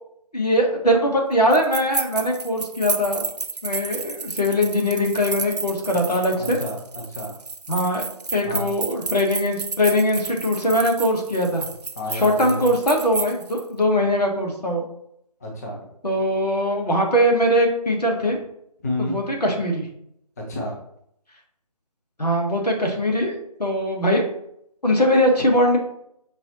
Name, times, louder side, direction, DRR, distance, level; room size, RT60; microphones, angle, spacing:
voice 1, 0.3-3.2 3.6-6.6 7.7-8.0 8.3-11.6 12.1-14.8 16.0-18.4 19.0-19.9 22.2-24.2 24.8-25.8, equal, 75° left, 1 dB, 1.4 m, -21 dB
sound 1, 1.5-13.6, right 4 dB, 80° right, 0.5 m, -32 dB
voice 2, 6.3-7.3 8.4-8.7 12.0-12.7 15.4-15.8 18.8-19.2 20.4-20.7, left 1 dB, 25° left, -1 dB, 0.6 m, -30 dB
5.4 x 2.8 x 3.0 m, 0.73 s
figure-of-eight pair, 155°, 20 cm